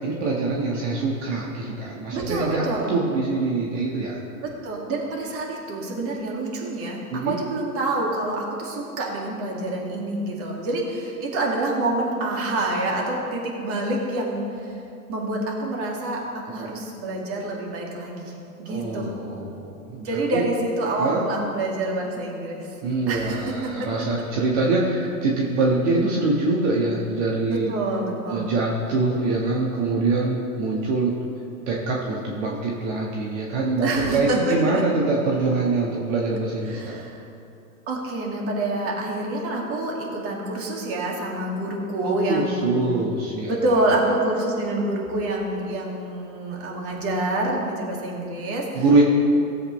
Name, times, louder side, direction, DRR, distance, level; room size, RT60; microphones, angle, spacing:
voice 1, 0.0-4.2 7.1-7.4 16.6-16.8 18.6-20.5 21.0-21.3 22.8-27.7 28.3-31.1 31.7-37.0 42.0-43.5 48.7-49.0, right 3 dB, 50° right, -3 dB, 1.6 m, -24 dB
voice 2, 2.1-2.9 4.4-14.7 15.1-18.3 18.6-19.1 20.0-22.8 23.1-23.7 27.5-28.5 33.8-34.8 36.7-37.2 37.9-42.9 43.5-49.0, right 2 dB, 30° right, -2 dB, 2.3 m, -27 dB
16.5 x 8.1 x 3.2 m, 2.7 s
hypercardioid pair, 120°, 45 cm